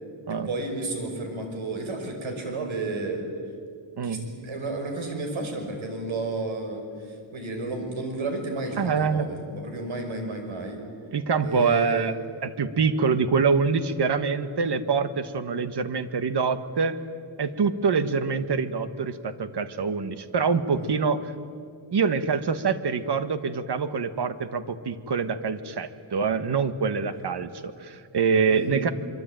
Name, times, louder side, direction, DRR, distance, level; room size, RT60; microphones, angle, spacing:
voice 1, 0.5-3.2 4.0-10.8 11.4-12.0 20.8-20.9 28.5-28.9, right 2 dB, 80° right, 4 dB, 5.8 m, -32 dB
voice 2, 4.0-4.3 8.8-9.3 11.1-12.2 12.4-17.0 17.4-21.3 21.9-28.9, right 5 dB, 55° right, 11 dB, 1.5 m, -25 dB
24.5 x 24.0 x 9.1 m, 2.3 s
wide cardioid pair, 125°, 47 cm